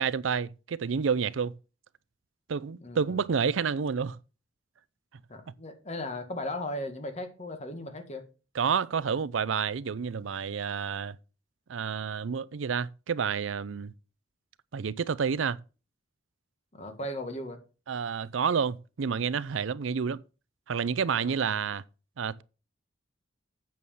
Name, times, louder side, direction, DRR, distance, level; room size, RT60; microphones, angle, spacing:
voice 1, 0.0-1.5 2.5-4.2 8.6-11.2 11.7-13.9 14.7-15.6 17.9-20.2 20.7-21.8 22.2-22.4, right 6 dB, 85° right, 0.5 m, -29 dB
voice 2, 2.8-3.2 5.3-8.2 16.7-17.6 21.1-21.6, left 1 dB, 35° left, 1.8 m, -37 dB
8.5 x 7.1 x 5.5 m
head